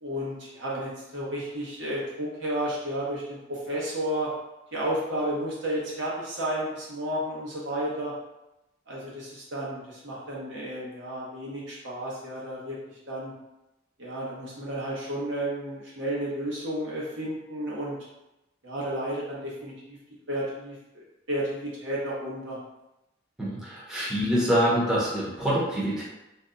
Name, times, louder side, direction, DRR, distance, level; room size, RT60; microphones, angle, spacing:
voice 1, 0.0-4.3 4.7-8.1 8.9-12.8 13.1-13.3 14.0-17.9 18.6-20.0 20.3-21.0 21.3-22.6, right 1 dB, 70° right, -6 dB, 1.1 m, -32 dB
voice 2, 23.4-26.0, equal, 5° right, -8 dB, 0.7 m, -25 dB
2.7 x 2.2 x 3.7 m, 0.95 s
head